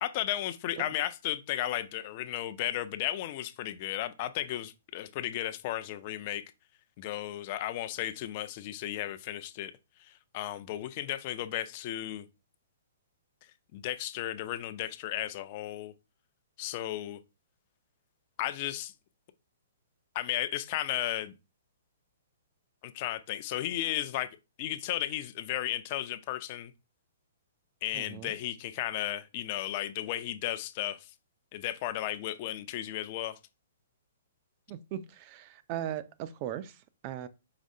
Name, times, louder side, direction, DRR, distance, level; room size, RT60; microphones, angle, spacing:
voice 1, 0.0-6.4 7.0-9.7 10.0-12.2 13.7-15.9 16.6-17.2 18.4-18.9 20.1-21.3 22.8-24.3 24.6-26.7 27.8-31.1 31.5-33.4, left 13 dB, 40° left, 0.5 m, -34 dB
voice 2, 27.9-28.3 34.7-37.3, right 11 dB, 40° right, 0.4 m, -38 dB
5.0 x 3.1 x 2.7 m
hypercardioid pair, 140°, 0 cm